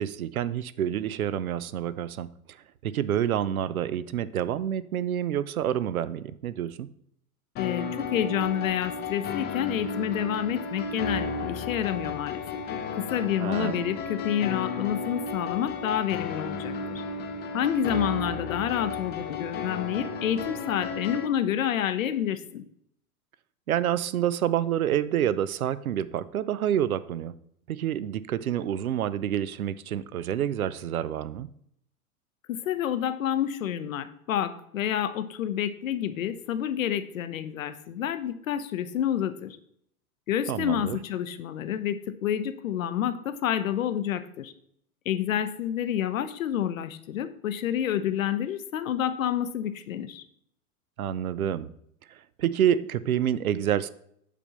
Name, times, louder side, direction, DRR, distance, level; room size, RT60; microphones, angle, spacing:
voice 1, 0.0-2.3 2.8-6.9 13.4-13.9 23.7-27.3 27.7-31.5 40.5-41.0 51.0-51.7 52.4-53.9, right 10 dB, 75° right, 0.5 m, -28 dB
voice 2, 7.6-12.4 13.0-17.0 17.5-22.6 32.5-39.6 40.3-44.5 45.1-50.2, left 10 dB, 65° left, 0.7 m, -29 dB
sound 1, 7.6-21.3, left 4 dB, 20° left, 0.7 m, -33 dB
8.3 x 3.6 x 5.6 m
figure-of-eight pair, 90°, 44 cm